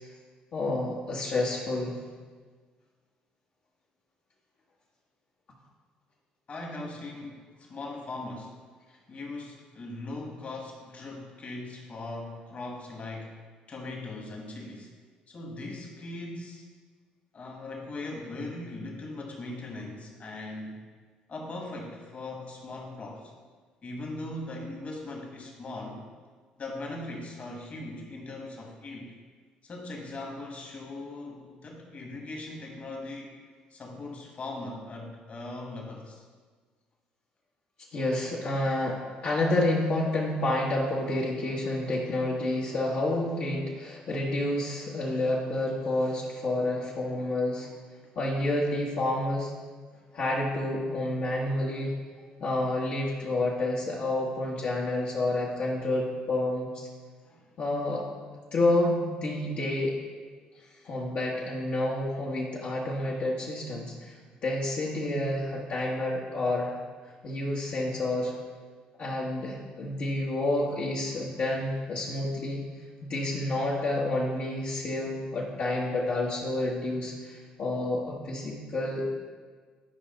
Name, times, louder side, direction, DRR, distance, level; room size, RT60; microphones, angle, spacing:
voice 1, 0.5-1.9 37.9-47.7 48.1-49.5 50.1-51.9 52.4-56.9 57.6-58.0 58.5-59.9 60.8-64.1 64.4-66.8 67.2-68.3 69.0-72.6 73.0-79.1, left 1 dB, 60° left, -6 dB, 1.5 m, -29 dB
voice 2, 6.5-8.6 9.1-13.4 13.7-14.9 15.3-16.7 17.3-20.9 21.3-23.3 23.8-26.0 26.6-29.2 29.6-33.3 33.7-36.2 57.2-57.5, left 2 dB, 40° left, 0 dB, 1.9 m, -39 dB
10.0 x 5.1 x 3.9 m, 1.5 s
supercardioid pair, 75°, 3 cm